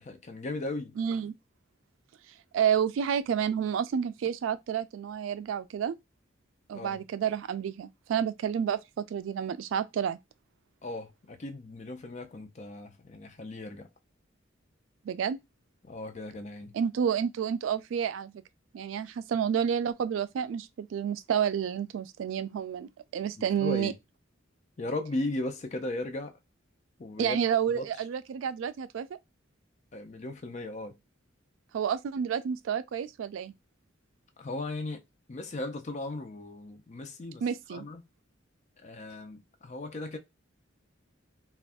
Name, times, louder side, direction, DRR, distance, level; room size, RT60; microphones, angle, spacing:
voice 1, 0.0-1.0 6.7-7.0 10.8-13.9 15.8-16.7 23.6-23.9 24.8-26.3 27.0-27.4 27.7-27.9 29.9-31.0 34.4-35.0 35.3-37.4 37.7-38.0 38.8-40.2, left 2 dB, 35° left, 0.5 m, -37 dB
voice 2, 1.0-1.3 2.5-6.0 6.7-10.2 15.1-15.4 16.7-18.3 18.7-23.9 27.2-29.1 31.7-33.5 37.4-37.9, right 8 dB, 85° right, 0.3 m, -30 dB
2.5 x 2.3 x 3.4 m
head